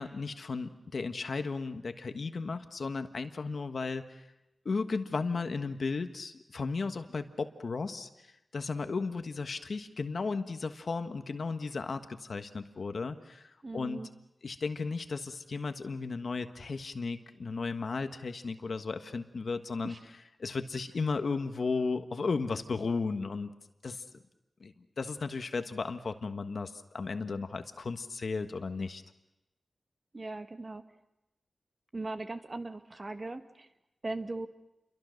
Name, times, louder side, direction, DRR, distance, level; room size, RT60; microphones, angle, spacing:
voice 1, 0.0-4.3 4.6-14.1 14.4-20.0 20.4-23.5 23.8-24.0 24.6-29.0, left 4 dB, 65° left, 8 dB, 1.4 m, -35 dB
voice 2, 13.6-14.1 19.8-20.0 30.1-30.8 31.9-33.7 34.0-34.5, right 2 dB, 35° right, 8 dB, 1.4 m, -39 dB
29.0 x 23.5 x 6.5 m, 0.91 s
wide cardioid pair, 95°, 0 cm